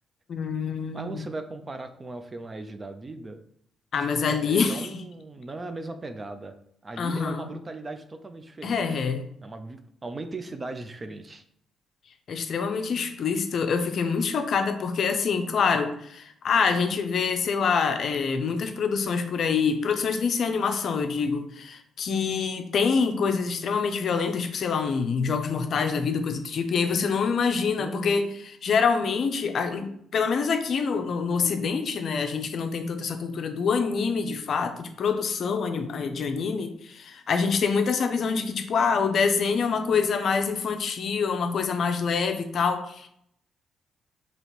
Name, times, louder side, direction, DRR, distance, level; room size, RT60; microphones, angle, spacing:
voice 1, 0.3-1.2 3.9-4.9 7.0-7.5 8.6-9.3 12.3-43.1, left 5 dB, 60° left, 7 dB, 0.5 m, -26 dB
voice 2, 0.9-3.4 4.3-6.6 6.8-9.0 9.4-11.4 27.8-28.3, right 2 dB, 25° right, 8 dB, 0.4 m, -38 dB
4.1 x 2.9 x 3.0 m, 0.70 s
cardioid pair, 90°, 0 cm